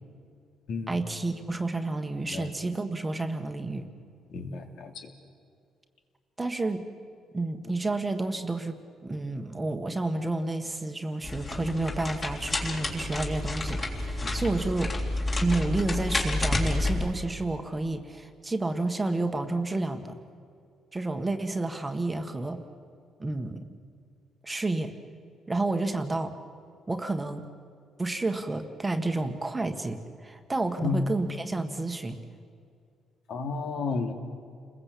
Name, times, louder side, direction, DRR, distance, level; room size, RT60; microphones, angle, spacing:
voice 1, 0.9-3.9 6.4-6.8 7.3-14.9 15.4-20.1 20.9-22.6 23.2-23.7 24.4-24.9 25.5-26.3 26.9-27.5 28.0-32.2, right 2 dB, 15° right, 6 dB, 1.5 m, -30 dB
voice 2, 4.3-5.1 14.2-14.4 30.8-31.1 33.3-34.1, left 4 dB, 65° left, 4 dB, 3.1 m, -32 dB
sound 1, 11.2-17.1, left 2 dB, 25° left, 3.4 m, -30 dB
30.0 x 21.5 x 8.5 m, 2.3 s
cardioid pair, 145°, 0 cm